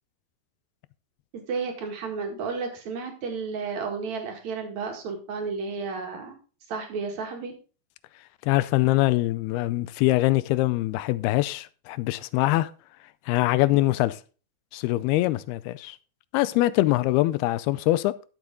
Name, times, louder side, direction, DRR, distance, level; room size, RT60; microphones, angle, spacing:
voice 1, 1.3-6.4 6.7-7.5, right 5 dB, 50° right, 2.9 m, -32 dB
voice 2, 8.4-12.7 13.3-14.2 14.7-16.0 16.3-18.1, left 17 dB, 85° left, 2.5 m, -23 dB
11.5 x 7.1 x 3.8 m
omnidirectional pair, 4.5 m